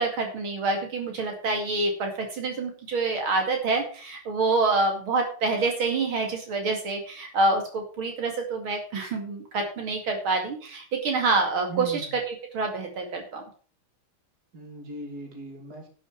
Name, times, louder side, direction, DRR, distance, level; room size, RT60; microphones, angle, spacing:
voice 1, 0.0-12.0 12.5-13.4, right 3 dB, 75° right, 3 dB, 3.1 m, -27 dB
voice 2, 11.7-12.1 14.5-15.9, right 3 dB, 50° right, 3 dB, 3.1 m, -38 dB
11.5 x 6.5 x 7.5 m, 0.42 s
omnidirectional pair, 2.3 m